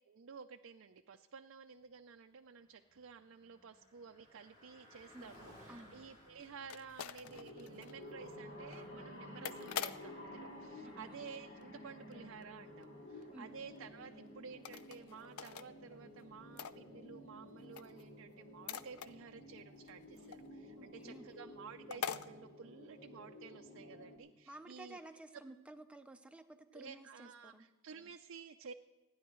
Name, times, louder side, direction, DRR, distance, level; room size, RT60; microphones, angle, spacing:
voice 1, 0.1-25.0 26.7-28.7, right 5 dB, 60° right, 5 dB, 0.5 m, -53 dB
Car passing by, 2.4-14.1, equal, 30° left, 4.9 m, -64 dB
sound 1, 5.2-11.9 12.1-12.6 12.8-12.9 13.2-13.3 13.7-13.8 14.5-15.7 15.9-17.3 17.6-20.8 21.2-21.3 21.5-21.6 21.9-22.3, left 8 dB, 90° left, 0.5 m, -46 dB
voice 2, 5.7-6.1 10.8-11.2 13.3-13.6 20.8-21.3 24.5-27.7, right 1 dB, 5° right, 6 dB, 0.7 m, -54 dB
sound 2, 7.2-24.2, left 1 dB, 55° left, 2.6 m, -53 dB
28.0 x 10.0 x 3.1 m, 1.2 s
head